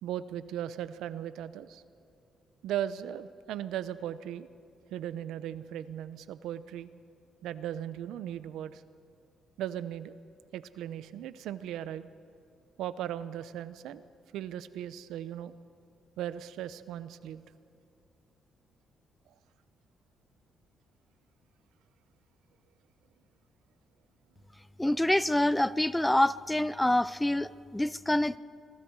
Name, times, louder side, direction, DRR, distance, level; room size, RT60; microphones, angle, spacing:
voice 1, 0.0-1.8 2.6-4.5 4.9-6.9 7.4-8.8 9.6-10.1 10.5-12.1 12.8-14.0 14.3-15.5 16.2-17.4, right 11 dB, 85° right, 14 dB, 0.8 m, -37 dB
voice 2, 24.8-28.4, left 1 dB, 10° left, 18 dB, 0.4 m, -26 dB
26.0 x 23.0 x 4.8 m, 2.5 s
cardioid pair, 90°, 0 cm